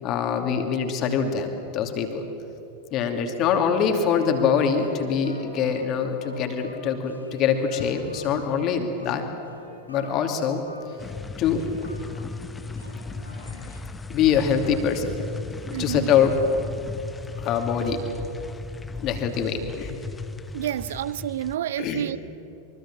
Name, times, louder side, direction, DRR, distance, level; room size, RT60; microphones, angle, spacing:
voice 1, 0.0-2.3 2.9-9.3 9.9-10.6 10.9-11.0 11.4-11.7 14.1-15.1 15.7-16.3 17.3-18.0 19.0-20.0 21.8-22.1, left 7 dB, 35° left, 2.9 m, -24 dB
sound 1, 3.7-13.8, left 1 dB, 90° left, 5.6 m, -46 dB
sound 2, 11.0-21.6, left 4 dB, 10° left, 1.1 m, -36 dB
voice 2, 15.7-16.1 20.5-22.2, right 12 dB, 60° right, 0.6 m, -29 dB
25.0 x 24.0 x 7.6 m
figure-of-eight pair, 90°, 0 cm